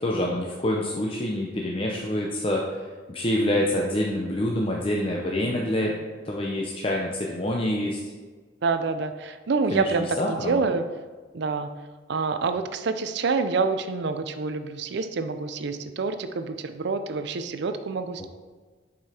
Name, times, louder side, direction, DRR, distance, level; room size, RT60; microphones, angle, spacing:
voice 1, 0.0-5.9 6.2-8.0 9.7-9.8 10.2-10.6 18.2-18.3, left 1 dB, 30° left, -1 dB, 0.7 m, -26 dB
voice 2, 8.6-10.8 11.3-11.7 12.1-18.3, right 4 dB, 65° right, 9 dB, 0.5 m, -27 dB
6.9 x 5.1 x 4.2 m, 1.4 s
head